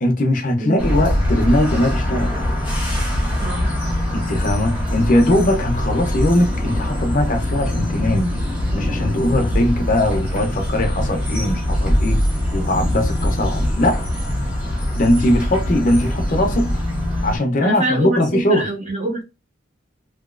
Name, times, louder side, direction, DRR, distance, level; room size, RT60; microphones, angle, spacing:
voice 1, 0.0-2.3 4.1-8.3 8.7-12.2 12.5-14.1 14.9-16.7 17.2-18.7, left 1 dB, 40° left, 0.6 m, -20 dB
sound 1, 0.8-17.4, left 1 dB, 5° right, 0.9 m, -22 dB
voice 2, 17.6-19.2, right 2 dB, 35° right, 1.1 m, -24 dB
2.9 x 2.8 x 2.4 m
head